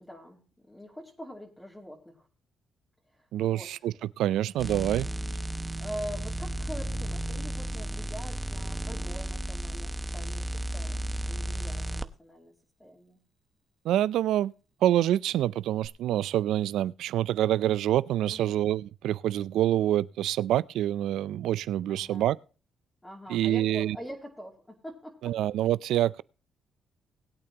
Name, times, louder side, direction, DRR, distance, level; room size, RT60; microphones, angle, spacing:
voice 1, 0.0-2.3 3.1-3.8 5.5-12.5 12.8-13.2 18.3-18.6 21.9-22.3 23.0-25.4, equal, 10° left, 2.7 m, -44 dB
voice 2, 3.3-5.1 13.8-14.5 14.8-22.4 23.3-24.0 25.2-26.2, right 12 dB, 85° right, 0.4 m, -26 dB
sound 1, 4.6-12.1 15.8-15.9, right 1 dB, 10° right, 0.9 m, -33 dB
20.0 x 8.7 x 2.9 m
cardioid pair, 90°, 0 cm